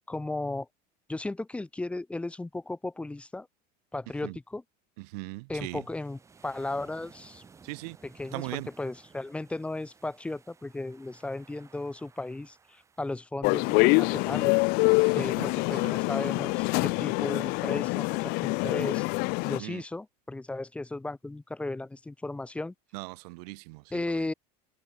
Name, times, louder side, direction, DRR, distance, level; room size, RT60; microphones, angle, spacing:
voice 1, 0.1-0.7 1.1-3.5 3.9-4.6 5.5-7.4 8.0-14.6 15.1-19.1 19.5-22.7 23.9-24.3, left 2 dB, 5° left, 2.0 m, -35 dB
voice 2, 5.0-5.8 7.6-8.0 8.3-8.7 14.9-15.9 19.6-19.8 22.9-24.2, right 26 dB, 70° right, 1.3 m, -40 dB
sound 1, 5.7-13.2, right 5 dB, 15° right, 6.1 m, -57 dB
sound 2, 13.4-19.6, left 30 dB, 50° left, 0.7 m, -25 dB
cardioid pair, 175°, 21 cm